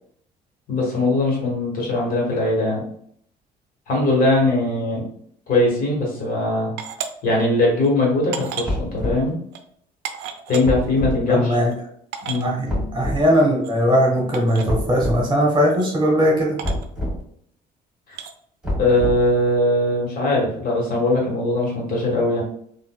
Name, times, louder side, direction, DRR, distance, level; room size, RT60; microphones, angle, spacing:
voice 1, 0.7-2.8 3.9-5.0 5.5-6.7 7.2-9.3 10.5-11.6 12.2-12.5 18.8-22.4, left 2 dB, 55° left, -2 dB, 1.4 m, -20 dB
sound 1, 6.8-7.1 7.8-7.9 8.3-8.7 9.5-9.6 10.0-10.6 11.5-11.6 11.7-11.8 12.1-12.4 13.6-13.7 14.3-14.7 15.7-15.9 16.6-16.9 18.1-18.3, right 8 dB, 85° right, 0.5 m, -32 dB
sound 2, 8.6-9.3 10.6-11.2 12.7-13.2 14.7-15.2 16.6-17.2 18.6-19.4, left 1 dB, 5° right, 1.4 m, -26 dB
voice 2, 11.3-11.7 12.4-16.6, equal, 25° right, -1 dB, 1.2 m, -19 dB
3.9 x 2.5 x 2.3 m, 0.66 s
cardioid pair, 110°, 17 cm